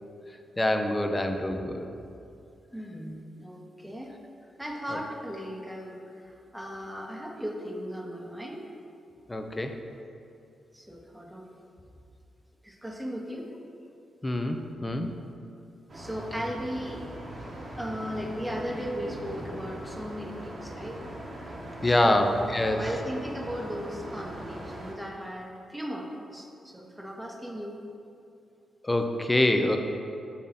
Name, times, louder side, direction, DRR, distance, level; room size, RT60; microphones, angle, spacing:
voice 1, 0.6-1.9 4.9-5.0 9.3-9.8 14.2-15.1 21.8-22.8 28.8-29.8, left 1 dB, 20° left, 6 dB, 0.6 m, -25 dB
voice 2, 2.7-4.2 4.6-8.7 10.7-11.5 12.6-13.5 15.9-17.0 17.8-21.0 21.8-22.3 22.7-27.8, equal, 5° right, 0 dB, 0.9 m, -37 dB
sound 1, 15.9-24.9, right 1 dB, 50° right, 1.2 m, -40 dB
5.6 x 3.7 x 5.7 m, 2.6 s
cardioid pair, 60°, 0 cm